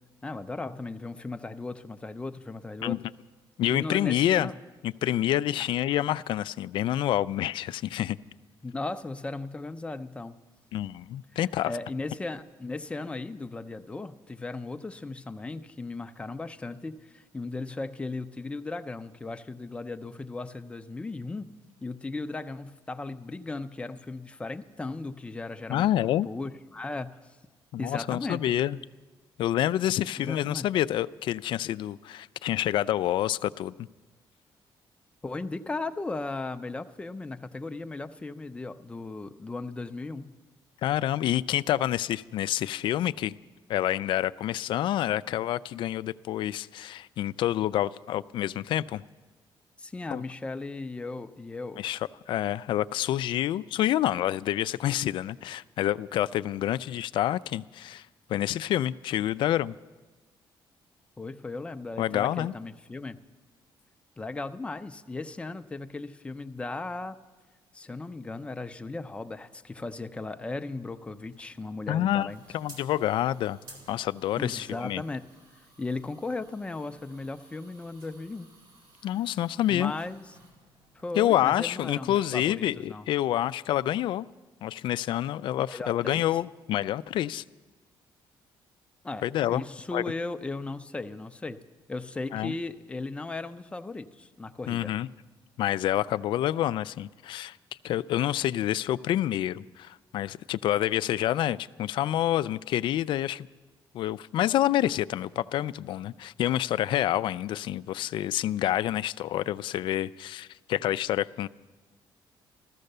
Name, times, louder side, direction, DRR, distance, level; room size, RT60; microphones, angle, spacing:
voice 1, 0.2-3.0 3.7-4.6 8.6-10.4 11.3-11.4 11.6-21.5 21.8-25.9 26.2-27.4 27.8-28.5 30.2-30.6 35.2-40.3 49.8-51.8 61.2-63.2 64.2-67.2 67.7-72.4 74.4-75.3 75.8-78.5 79.7-80.2 80.9-83.1 85.5-86.2 89.0-89.2 89.5-91.6 91.9-94.9, left 3 dB, 15° left, 0.6 m, -36 dB
voice 2, 3.6-4.5 4.8-8.2 10.7-11.7 25.7-26.3 27.7-28.8 29.4-33.7 40.8-43.3 43.7-49.0 50.1-50.2 51.8-52.0 52.3-59.7 62.0-62.5 71.9-72.3 72.5-73.6 73.9-75.0 79.0-79.9 81.2-84.3 84.6-87.4 89.2-89.6 89.9-90.0 92.3-92.5 94.7-95.1 95.6-97.6 97.8-103.5 103.9-111.5, left 12 dB, 70° left, 0.4 m, -28 dB
sound 1, 71.2-82.2, right 2 dB, 65° right, 4.2 m, -56 dB
14.5 x 14.0 x 6.7 m
cardioid pair, 145°, 9 cm